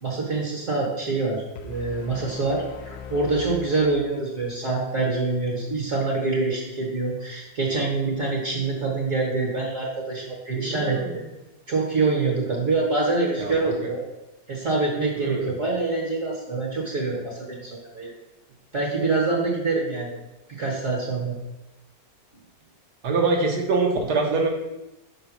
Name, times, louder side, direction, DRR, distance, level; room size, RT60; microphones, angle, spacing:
voice 1, 0.0-11.2 11.7-14.0 14.5-18.1 18.7-20.2 20.5-21.4, right 3 dB, 45° right, -3 dB, 1.4 m, -25 dB
sound 1, 1.6-4.6, left 5 dB, 80° left, 1.2 m, -41 dB
voice 2, 10.6-11.2 13.4-13.7 15.2-15.4 23.0-24.5, right 3 dB, 65° right, 1 dB, 1.6 m, -24 dB
5.1 x 4.0 x 5.8 m, 0.96 s
omnidirectional pair, 2.0 m